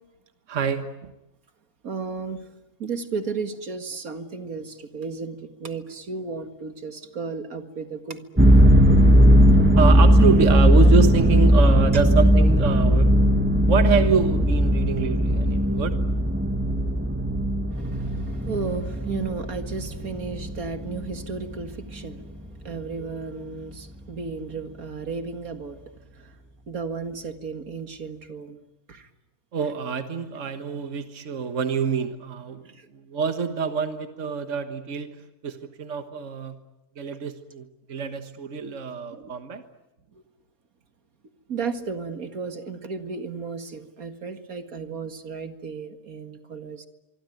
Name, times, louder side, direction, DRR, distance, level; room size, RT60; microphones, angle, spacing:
voice 1, 0.5-1.1 9.8-13.1 13.7-16.0 29.5-35.2 35.4-36.6 37.0-39.6, right 5 dB, 60° right, 1.8 m, -26 dB
voice 2, 1.8-2.5 2.8-8.3 17.7-25.8 26.1-26.4 26.7-28.6 28.9-29.1 32.7-32.9 39.1-39.3 40.1-40.2 41.5-46.9, right 4 dB, 80° right, 2.3 m, -34 dB
sound 1, 8.4-21.6, equal, 10° right, 1.7 m, -18 dB
25.0 x 24.0 x 9.3 m
omnidirectional pair, 1.5 m